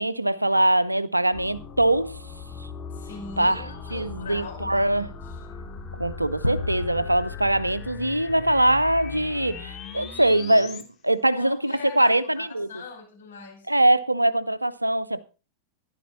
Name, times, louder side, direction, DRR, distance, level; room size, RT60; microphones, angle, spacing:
voice 1, 0.0-2.2 3.4-3.6 3.9-5.1 5.9-12.7 13.7-15.2, right 1 dB, 85° right, 0.8 m, -22 dB
sound 1, 1.3-10.8, left 6 dB, 25° left, 2.5 m, -39 dB
voice 2, 2.9-5.2 11.4-13.7, left 4 dB, 65° left, 5.5 m, -41 dB
sound 2, 6.4-8.4, left 1 dB, 90° left, 0.8 m, -32 dB
14.5 x 11.5 x 4.3 m
figure-of-eight pair, 90°, 0 cm